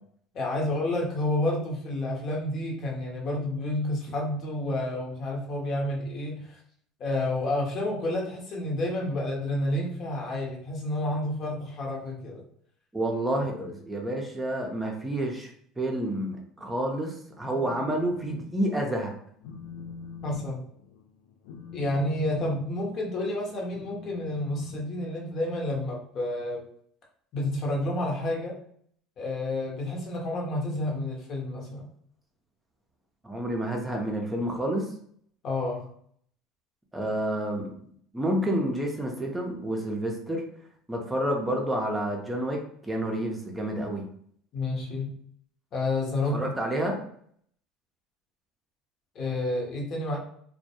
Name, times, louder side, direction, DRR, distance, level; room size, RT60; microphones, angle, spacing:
voice 1, 0.3-6.6 7.0-12.4 20.2-20.6 21.7-26.6 27.3-28.6 29.2-31.9 35.4-35.9 44.5-45.2 45.7-46.5 49.1-50.2, left 1 dB, 50° left, -2 dB, 0.9 m, -30 dB
voice 2, 12.9-15.5 15.8-19.1 33.2-34.9 36.9-37.7 38.1-40.4 40.9-44.1 46.3-47.0, right 1 dB, 10° right, 0 dB, 0.6 m, -29 dB
Telephone, 17.4-18.4 18.8-19.1 19.4-25.5, left 5 dB, 80° left, 0.3 m, -43 dB
2.2 x 2.2 x 2.8 m, 0.62 s
hypercardioid pair, 85°, 0 cm